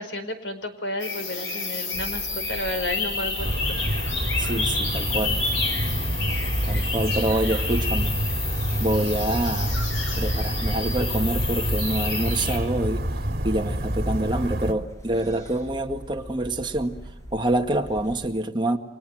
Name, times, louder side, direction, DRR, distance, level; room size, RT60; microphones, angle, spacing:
voice 1, 0.0-3.8 6.7-6.9, left 1 dB, 65° left, 8 dB, 4.7 m, -32 dB
sound 1, 1.0-12.6, left 4 dB, 90° left, 6.3 m, -30 dB
sound 2, 1.9-18.3, right 1 dB, 15° left, 5.3 m, -40 dB
sound 3, 3.4-14.7, right 1 dB, 55° right, 3.1 m, -27 dB
voice 2, 4.4-5.4 6.7-8.2 8.8-9.8 10.2-13.0 13.4-17.0 17.3-18.8, right 1 dB, 25° right, 4 dB, 1.9 m, -26 dB
30.0 x 25.5 x 7.9 m, 0.90 s
head